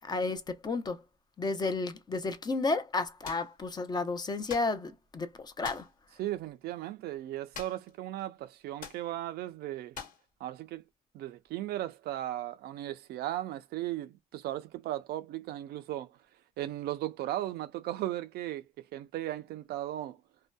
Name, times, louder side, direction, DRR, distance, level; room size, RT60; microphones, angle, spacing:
voice 1, 0.1-1.0 1.4-5.3 5.6-5.8, left 3 dB, 25° left, 0.5 m, -32 dB
sound 1, 3.2-3.5 4.5-4.8 5.6-5.9 7.5-7.9 8.2-8.3 8.8-9.1 9.9-10.2, left 6 dB, 55° left, 1.2 m, -44 dB
voice 2, 6.1-10.0 10.4-10.8 11.1-16.2 16.6-18.7 18.9-20.2, right 14 dB, 70° right, 0.4 m, -36 dB
2.6 x 2.1 x 2.2 m
cardioid pair, 110°, 17 cm